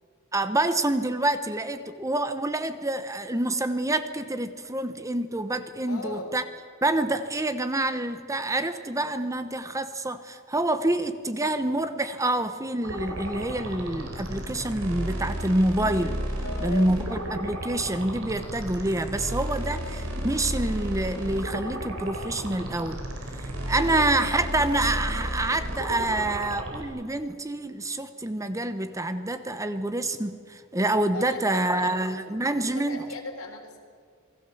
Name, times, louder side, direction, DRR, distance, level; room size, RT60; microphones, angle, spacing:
voice 1, 0.3-6.4 6.8-16.2 16.6-23.0 23.4-33.0, right 1 dB, 15° right, 10 dB, 0.9 m, -27 dB
voice 2, 5.9-6.3 16.4-16.9 23.7-24.2 31.1-33.8, left 2 dB, 80° left, 3 dB, 4.0 m, -38 dB
sound 1, 12.8-26.8, right 1 dB, 70° right, 4.3 m, -33 dB
27.5 x 19.5 x 7.2 m, 2.1 s
head